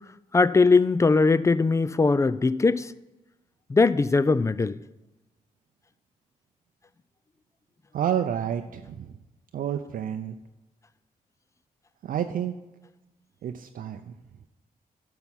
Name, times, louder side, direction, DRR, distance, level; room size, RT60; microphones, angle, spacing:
voice 1, 0.3-2.9 3.7-4.8, left 3 dB, 20° left, 0.3 m, -20 dB
voice 2, 7.9-9.2 9.5-10.3 12.0-12.5 13.4-14.1, right 9 dB, 70° right, 0.5 m, -29 dB
10.5 x 5.6 x 5.6 m
cardioid pair, 85°, 15 cm